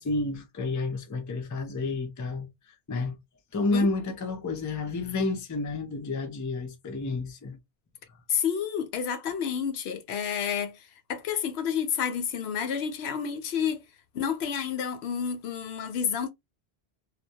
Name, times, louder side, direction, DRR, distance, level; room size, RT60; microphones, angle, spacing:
voice 1, 0.0-2.5 2.9-3.2 3.5-7.6, left 3 dB, 30° left, 0.3 m, -30 dB
voice 2, 3.7-4.1 8.3-13.8 14.1-16.3, left 7 dB, 80° left, 0.8 m, -30 dB
2.1 x 2.1 x 2.7 m
omnidirectional pair, 1.1 m